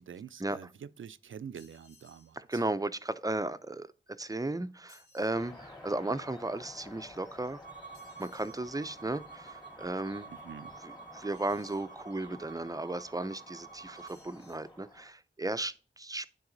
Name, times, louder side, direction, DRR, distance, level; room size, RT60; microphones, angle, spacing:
voice 1, 0.0-2.6 10.3-10.7, right 8 dB, 80° right, 0.5 m, -46 dB
sound 1, 1.5-2.4 4.9-5.4 7.9-8.6 11.3-11.9 13.9-14.7, left 3 dB, 80° left, 2.6 m, -62 dB
voice 2, 2.3-3.9 4.2-7.6 8.2-10.3 10.8-16.3, right 2 dB, 15° right, 0.6 m, -35 dB
sound 2, 5.3-15.1, left 2 dB, 20° left, 2.6 m, -52 dB
Bowed string instrument, 7.6-14.2, right 5 dB, 40° left, 1.9 m, -50 dB
9.7 x 4.0 x 3.9 m
cardioid pair, 50°, 20 cm